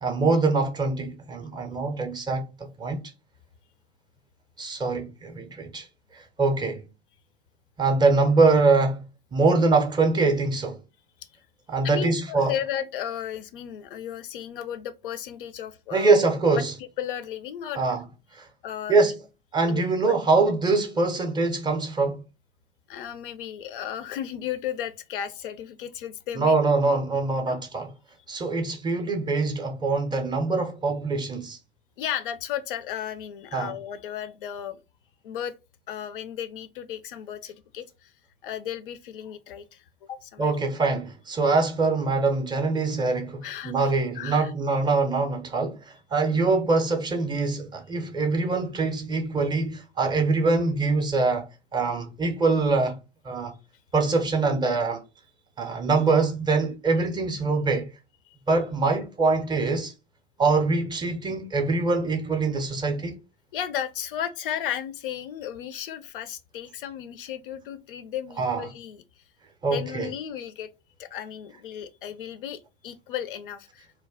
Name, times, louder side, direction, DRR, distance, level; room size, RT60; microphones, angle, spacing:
voice 1, 0.0-3.0 4.6-5.9 6.1-6.8 7.8-9.0 9.3-10.8 11.7-12.6 15.9-16.8 17.7-18.1 18.3-18.5 18.9-19.2 19.5-22.2 26.3-27.9 28.3-31.6 33.5-33.8 40.4-53.0 53.2-53.5 53.9-55.0 55.6-57.9 58.5-59.9 60.4-63.2 68.3-68.7 69.6-70.1, right 3 dB, 15° right, 0.4 m, -24 dB
voice 2, 11.8-16.2 16.5-17.9 18.6-19.0 19.7-20.2 22.9-26.6 27.4-27.6 32.0-34.8 35.2-35.5 35.9-38.1 38.4-40.5 43.4-44.5 46.3-46.4 58.3-58.4 63.5-69.0 69.7-70.7 71.0-73.9, left 10 dB, 60° left, 0.4 m, -34 dB
2.2 x 2.0 x 3.4 m
figure-of-eight pair, 80°, 30 cm